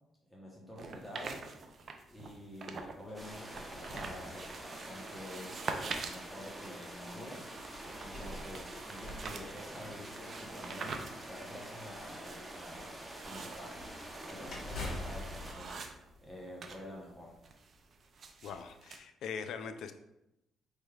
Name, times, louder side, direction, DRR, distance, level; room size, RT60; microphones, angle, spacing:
voice 1, 0.3-1.4 2.1-7.5 8.0-13.9 14.3-15.8 16.2-17.4, left 1 dB, 10° left, -4 dB, 1.0 m, -48 dB
sound 1, 0.8-3.0 3.3-16.8 17.1-19.0, right 4 dB, 50° right, 0.4 m, -45 dB
sound 2, 3.1-5.0 5.8-5.9 7.7-10.3 13.7-16.8, left 2 dB, 50° left, 1.2 m, -46 dB
sound 3, 3.1-15.5, right 1 dB, 20° right, 0.8 m, -47 dB
voice 2, 18.4-19.9, left 6 dB, 75° left, 9 dB, 0.3 m, -41 dB
5.2 x 3.3 x 2.3 m, 0.87 s
cardioid pair, 90°, 0 cm